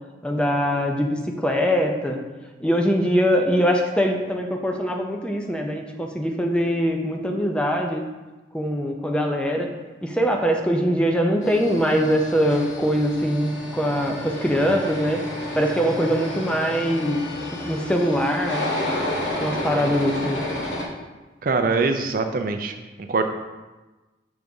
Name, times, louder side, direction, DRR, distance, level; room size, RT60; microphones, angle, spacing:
voice 1, 0.2-2.2 2.6-8.0 8.5-9.7 10.0-15.2 15.5-17.2 17.5-18.7 19.4-20.5, equal, 5° left, 2 dB, 0.5 m, -22 dB
sound 1, 11.4-20.8, left 1 dB, 85° left, 1.4 m, -31 dB
voice 2, 21.4-22.7 23.1-23.2, right 4 dB, 50° right, 6 dB, 0.4 m, -22 dB
6.3 x 3.5 x 5.3 m, 1.2 s
head